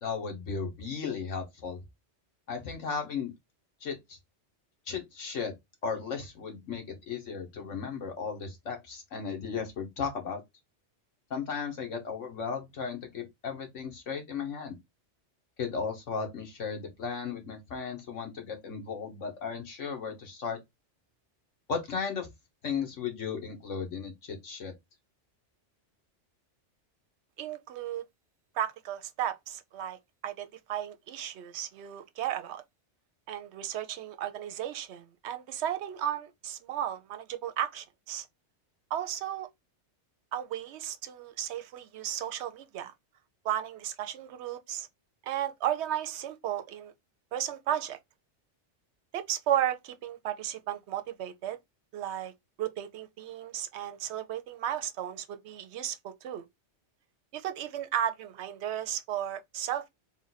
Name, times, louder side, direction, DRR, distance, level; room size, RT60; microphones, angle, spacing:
voice 1, 0.0-1.8 2.5-3.3 3.8-4.2 4.9-5.5 5.8-10.4 11.3-14.8 15.6-20.6 21.7-22.3 22.6-24.7, left 6 dB, 90° left, 1.6 m, -35 dB
voice 2, 27.4-28.0 28.5-30.0 30.2-32.6 33.3-38.3 38.9-39.5 40.3-42.9 43.4-44.9 45.2-46.9 47.3-48.0 49.1-51.6 51.9-52.3 52.6-56.4 57.3-59.9, right 11 dB, 70° right, 0.9 m, -34 dB
3.8 x 2.5 x 3.9 m
omnidirectional pair, 1.2 m